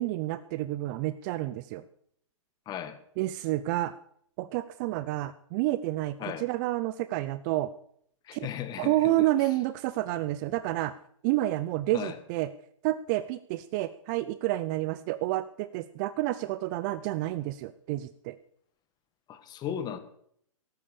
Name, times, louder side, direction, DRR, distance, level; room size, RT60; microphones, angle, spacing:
voice 1, 0.0-1.8 3.2-3.9 4.4-7.7 8.3-8.5 8.8-10.9 11.2-12.5 12.8-18.4, right 16 dB, 35° right, 14 dB, 0.6 m, -29 dB
voice 2, 2.7-3.0 6.2-6.4 8.2-9.3 11.9-12.2 19.3-20.0, left 9 dB, 25° left, 10 dB, 1.8 m, -36 dB
17.5 x 8.6 x 7.0 m, 0.66 s
hypercardioid pair, 135°, 17 cm